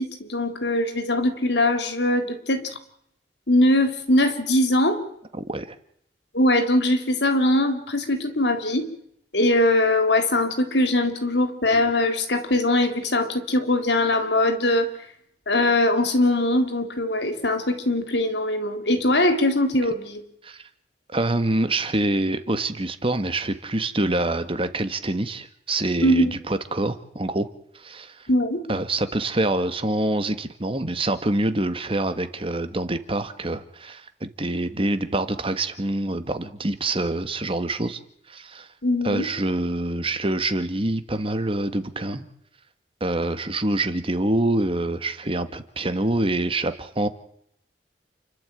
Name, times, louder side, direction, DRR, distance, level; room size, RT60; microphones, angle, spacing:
voice 1, 0.0-2.7 3.5-5.0 6.3-8.9 9.3-14.9 15.5-20.2 26.0-26.3 28.3-28.6 38.8-39.3, left 1 dB, 70° left, 8 dB, 3.7 m, -21 dB
voice 2, 5.4-5.7 20.4-20.7 21.1-27.5 27.7-28.3 28.7-38.0 38.3-38.7 39.0-42.3 43.0-47.1, right 2 dB, 30° right, 10 dB, 1.7 m, -26 dB
29.5 x 12.0 x 9.2 m, 0.73 s
head